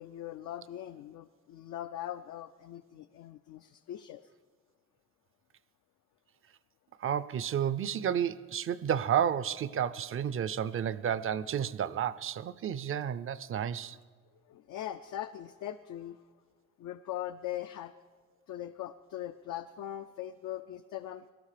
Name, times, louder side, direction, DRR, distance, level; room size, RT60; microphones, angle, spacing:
voice 1, 0.0-4.3 14.5-16.2 16.8-17.9 18.5-21.3, left 12 dB, 75° left, 0.5 m, -41 dB
voice 2, 7.0-14.0, right 9 dB, 45° right, 0.5 m, -31 dB
17.5 x 12.0 x 5.0 m
cardioid pair, 90°, 30 cm